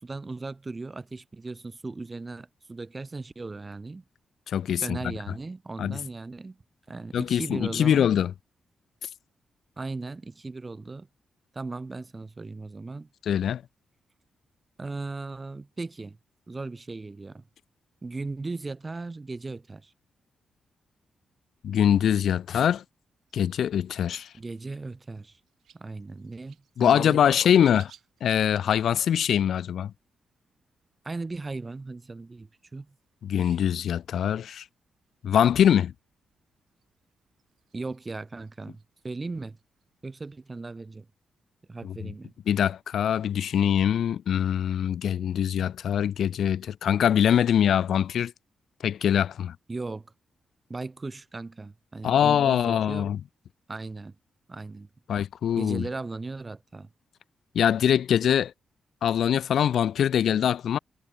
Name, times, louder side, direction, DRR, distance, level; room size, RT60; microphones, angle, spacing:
voice 1, 0.0-4.0 4.8-6.6 6.9-8.1 9.8-11.1 11.5-13.1 14.8-16.2 16.5-17.5 18.0-19.9 24.4-25.4 25.7-27.4 31.0-32.9 33.4-33.6 37.7-39.6 40.0-41.1 41.7-42.3 49.7-50.1 50.7-53.1 53.7-54.1 54.5-54.9 55.5-56.9, right 3 dB, 30° right, 2.9 m, -37 dB
voice 2, 4.5-5.1 5.8-6.0 7.1-8.3 13.3-13.6 21.6-22.8 23.3-24.3 26.8-27.9 28.2-29.9 33.2-34.6 35.2-35.9 41.8-42.1 42.5-48.3 48.8-49.6 52.0-53.2 55.1-55.8 57.5-58.5 59.0-60.8, left 9 dB, 75° left, 0.4 m, -23 dB
sound 1, 23.2-40.4, right 10 dB, 80° right, 2.9 m, -61 dB
cardioid pair, 65°, 0 cm